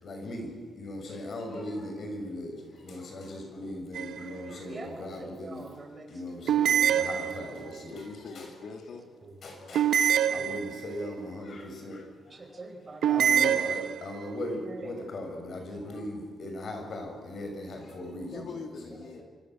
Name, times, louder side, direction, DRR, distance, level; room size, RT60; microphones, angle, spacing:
voice 1, 0.0-5.7 6.1-8.1 8.3-8.4 9.4-12.4 13.0-18.3 19.1-19.2, left 1 dB, 45° left, 4 dB, 6.6 m, -39 dB
sound 1, 3.9-4.5 6.5-7.8 9.7-11.1 13.0-14.3, right 9 dB, 85° right, 1.2 m, -26 dB
voice 2, 4.4-6.1 6.6-7.0 9.2-9.3 9.6-9.9 10.2-10.6 12.3-13.6 14.6-14.9 18.2-18.4, right 3 dB, 25° right, 4 dB, 4.8 m, -45 dB
voice 3, 7.9-9.1 18.3-19.2, left 5 dB, 60° left, 4 dB, 3.3 m, -42 dB
27.0 x 26.0 x 7.9 m, 1.5 s
wide cardioid pair, 165°, 0 cm